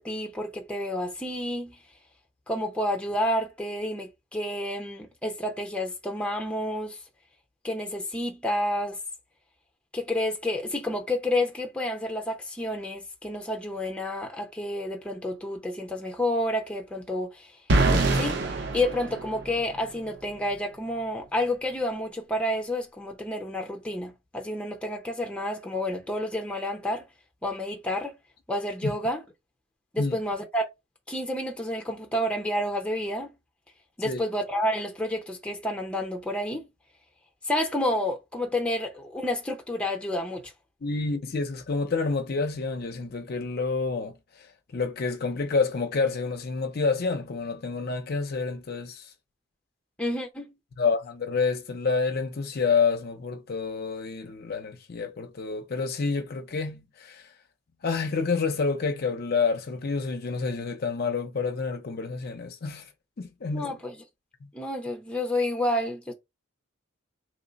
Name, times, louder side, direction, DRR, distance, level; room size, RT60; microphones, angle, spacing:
voice 1, 0.0-1.8 2.5-7.0 7.6-9.0 9.9-17.5 18.1-18.4 18.7-27.1 27.4-28.1 28.5-29.2 29.9-30.7 31.1-33.3 34.0-36.6 37.5-40.5 50.0-50.5 63.5-64.0 64.5-66.1, left 1 dB, 5° left, 0.6 m, -30 dB
sound 1, 17.7-19.8, right 2 dB, 55° right, 0.7 m, -24 dB
voice 2, 40.8-44.5 44.7-49.1 50.8-57.3 57.8-62.9 63.2-63.8, left 4 dB, 50° left, 0.5 m, -28 dB
3.1 x 2.1 x 3.9 m
head